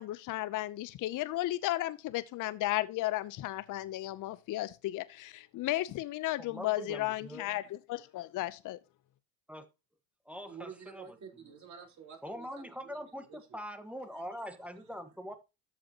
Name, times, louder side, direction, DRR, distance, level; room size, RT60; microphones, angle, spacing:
voice 1, 0.0-8.8, left 16 dB, 50° left, 0.7 m, -34 dB
voice 2, 6.4-7.6 9.5-9.7 10.2-11.0 12.2-15.3, equal, 5° right, 1.4 m, -43 dB
voice 3, 10.5-13.6 14.1-14.4, right 6 dB, 40° right, 4.3 m, -50 dB
13.5 x 5.0 x 2.9 m
hypercardioid pair, 75°, 42 cm